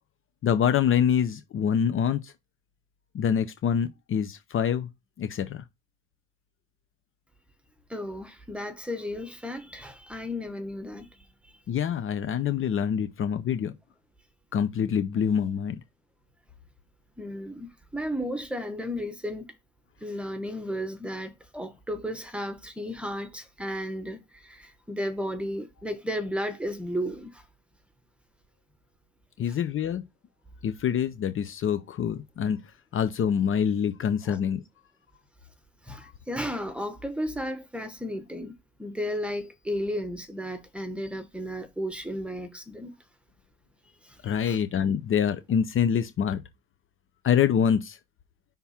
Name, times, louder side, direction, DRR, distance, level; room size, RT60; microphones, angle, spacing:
voice 1, 0.4-2.3 3.1-4.9 5.2-5.6 11.7-13.7 14.5-15.8 29.4-30.0 30.6-32.6 32.9-34.6 44.2-46.4 47.2-48.0, left 8 dB, 45° left, 0.7 m, -25 dB
voice 2, 7.9-11.1 17.2-19.4 20.0-27.4 34.3-34.4 35.8-38.5 38.8-43.0 44.0-44.2 44.5-44.6, equal, 5° right, 1.1 m, -34 dB
5.8 x 3.6 x 5.7 m
cardioid pair, 130°, 30 cm